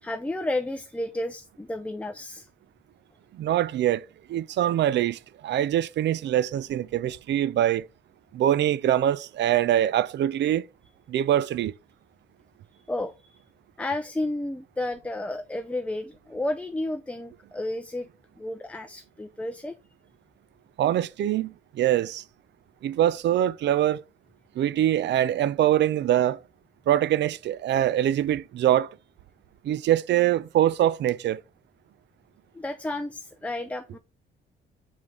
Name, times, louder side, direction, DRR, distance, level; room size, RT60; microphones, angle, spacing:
voice 1, 0.0-2.5 12.9-13.4 13.8-18.1 18.4-19.8 32.5-34.0, left 1 dB, 5° left, 0.5 m, -32 dB
voice 2, 3.3-7.9 8.3-10.6 11.1-11.7 20.8-22.2 22.8-24.0 24.6-26.4 26.9-29.0 29.6-31.4, right 12 dB, 65° right, 0.5 m, -24 dB
5.5 x 4.9 x 3.6 m
cardioid pair, 90°, 20 cm